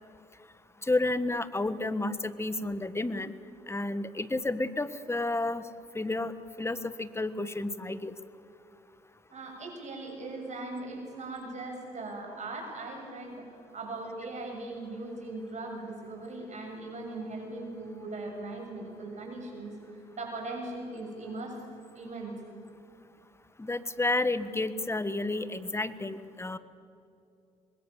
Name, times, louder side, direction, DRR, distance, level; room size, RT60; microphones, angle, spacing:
voice 1, 0.9-3.3 3.7-5.6 5.9-6.3 6.6-8.1 23.6-26.6, left 2 dB, 15° left, 14 dB, 1.4 m, -31 dB
voice 2, 9.3-21.6 22.0-22.4, right 2 dB, 45° right, 1 dB, 7.3 m, -39 dB
25.0 x 21.0 x 7.2 m, 2.6 s
supercardioid pair, 70°, 16 cm